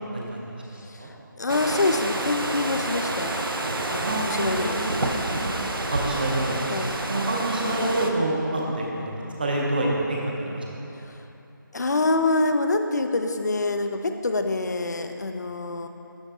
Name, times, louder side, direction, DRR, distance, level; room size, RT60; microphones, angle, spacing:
voice 1, 0.7-1.1 4.0-4.8 5.8-6.6 7.1-9.1 9.4-11.0, right 1 dB, 25° right, -2 dB, 0.7 m, -27 dB
voice 2, 1.4-3.4 3.9-5.2 6.7-6.9 11.1-11.2 11.7-15.9, left 2 dB, 50° left, 7 dB, 0.4 m, -26 dB
sound 1, 1.5-8.1, right 2 dB, 85° right, 0.7 m, -28 dB
11.5 x 3.9 x 3.6 m, 2.9 s
figure-of-eight pair, 175°, 11 cm